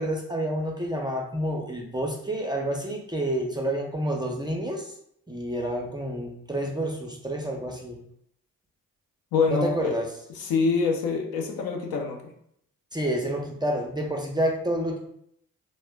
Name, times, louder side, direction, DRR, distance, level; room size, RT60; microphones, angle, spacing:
voice 1, 0.0-4.9 5.3-8.0 9.5-10.1 12.9-15.0, right 1 dB, 10° right, 0 dB, 0.5 m, -29 dB
voice 2, 9.3-9.9 10.4-12.2, left 4 dB, 60° left, 2 dB, 0.7 m, -25 dB
2.8 x 2.1 x 3.3 m, 0.71 s
hypercardioid pair, 40°, 42 cm